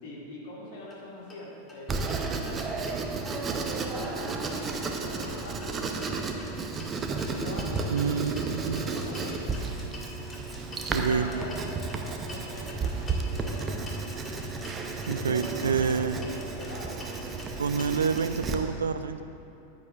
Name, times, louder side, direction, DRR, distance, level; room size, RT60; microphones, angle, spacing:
voice 1, 0.0-2.4 3.3-4.4 4.9-6.6 7.3-8.1 8.6-9.5 11.0-14.0 15.1-18.3, left 1 dB, 50° left, -4 dB, 2.3 m, -43 dB
sound 1, 0.8-1.0 1.3-1.4 1.7-1.8 2.1-3.0 3.2-18.2, left 1 dB, 20° left, 1.8 m, -47 dB
Writing, 1.9-18.5, right 3 dB, 20° right, 0.7 m, -33 dB
voice 2, 7.9-8.8 10.9-11.3 15.1-16.2 17.6-19.2, right 6 dB, 70° right, 11 dB, 0.4 m, -27 dB
14.0 x 9.5 x 2.4 m, 2.8 s
figure-of-eight pair, 90°, 0 cm